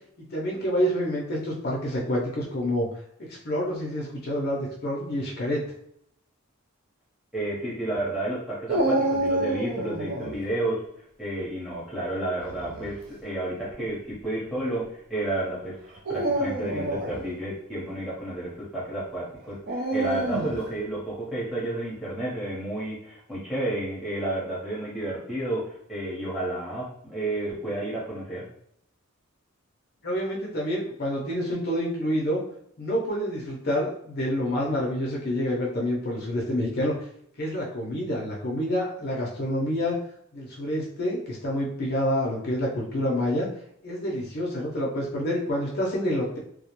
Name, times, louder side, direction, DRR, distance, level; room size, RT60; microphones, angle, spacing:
voice 1, 0.3-2.9 3.2-5.6 30.0-32.4 32.8-37.1 37.4-40.0 40.3-43.5 43.8-46.4, equal, 45° left, -3 dB, 0.5 m, -28 dB
voice 2, 7.3-10.8 11.2-15.8 16.1-25.6 25.9-28.5, right 1 dB, ahead, -7 dB, 0.8 m, -31 dB
Dog, 8.7-10.4 12.4-12.9 13.7-13.8 15.9-17.2 19.7-20.7, right 2 dB, 45° right, 0.4 m, -27 dB
2.2 x 2.1 x 2.9 m, 0.69 s
head